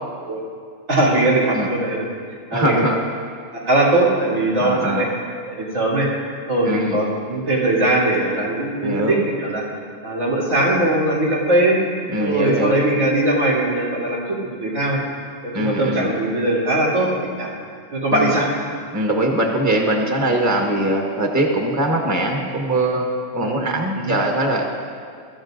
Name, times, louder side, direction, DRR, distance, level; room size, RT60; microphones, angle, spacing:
voice 1, 0.9-2.0 2.5-2.8 3.5-5.0 5.5-6.1 6.5-9.6 10.0-11.8 12.2-15.0 15.4-17.1 17.4-17.5 17.9-18.5 23.4-23.6 24.0-24.2, right 1 dB, 85° right, -7 dB, 3.8 m, -20 dB
voice 2, 2.5-3.0 4.6-5.0 6.6-7.0 8.8-9.2 12.1-12.8 15.5-16.1 18.1-18.4 18.9-23.1 23.3-24.6, right 1 dB, 15° right, 0 dB, 1.3 m, -21 dB
24.0 x 14.0 x 2.6 m, 2.1 s
omnidirectional pair, 1.4 m